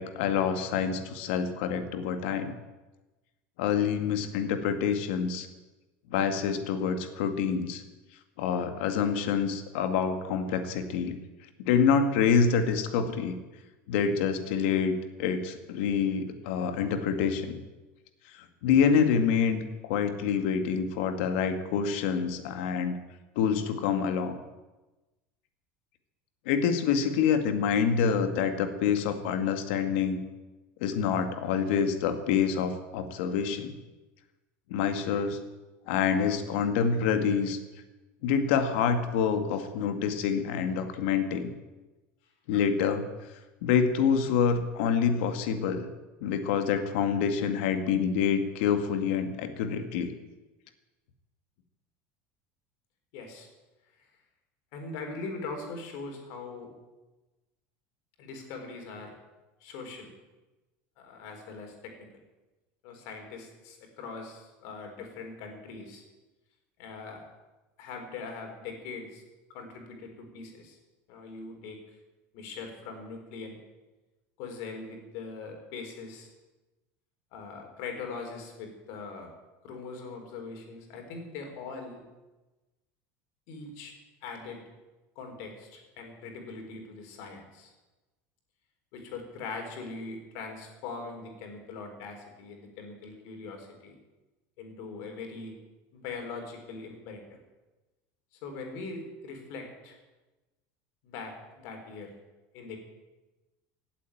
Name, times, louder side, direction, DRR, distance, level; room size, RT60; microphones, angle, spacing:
voice 1, 0.0-2.5 3.6-5.5 6.1-7.8 8.4-11.1 11.6-13.3 13.9-14.9 15.2-17.6 18.4-23.0 23.4-24.4 26.5-30.2 30.8-33.7 34.7-35.4 35.9-37.6 38.2-41.5 42.5-43.1 43.6-45.9 46.2-50.1, left 6 dB, 75° left, 7 dB, 2.0 m, -27 dB
voice 2, 53.1-53.5 54.0-54.1 54.7-56.7 58.2-59.1 59.6-60.1 61.0-62.1 62.8-66.0 66.8-67.2 67.8-69.2 69.5-70.8 71.1-71.8 72.3-73.6 74.4-76.3 77.3-79.3 79.6-82.0 83.5-83.9 84.2-84.6 85.2-87.7 88.9-94.0 94.6-95.6 95.9-97.4 98.4-100.0 101.0-102.1 102.5-102.8, left 4 dB, 55° left, 4 dB, 4.1 m, -41 dB
17.0 x 8.3 x 9.2 m, 1.1 s
cardioid pair, 175°, 6 cm